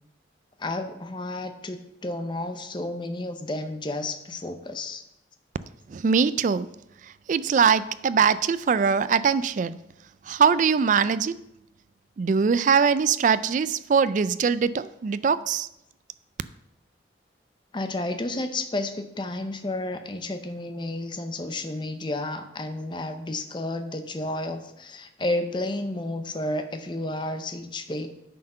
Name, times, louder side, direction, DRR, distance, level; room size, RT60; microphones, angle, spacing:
voice 1, 0.6-5.0 17.7-28.1, left 2 dB, 25° left, 0.7 m, -31 dB
voice 2, 5.9-6.7 7.3-9.8 10.3-11.4 12.2-15.7, right 6 dB, 45° right, 0.3 m, -22 dB
9.3 x 5.7 x 5.5 m
head